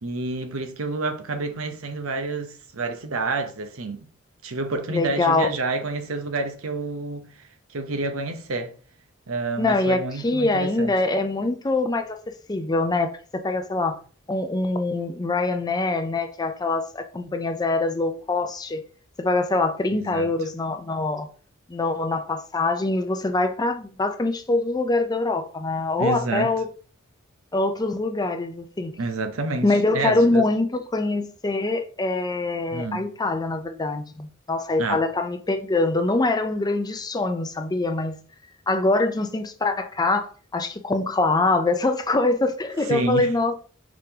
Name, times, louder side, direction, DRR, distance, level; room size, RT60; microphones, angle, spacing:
voice 1, 0.0-4.1 4.4-7.4 7.7-8.8 9.3-10.9 19.9-20.3 26.0-26.5 29.0-30.5 32.7-33.1 34.8-35.1 42.9-43.4, right 3 dB, 90° right, 0.8 m, -29 dB
voice 2, 4.9-5.5 9.6-12.2 12.5-14.0 14.3-18.8 19.2-21.3 21.7-26.7 27.5-28.9 29.6-38.2 38.7-43.5, left 2 dB, 20° left, 0.5 m, -24 dB
4.9 x 3.7 x 2.8 m
head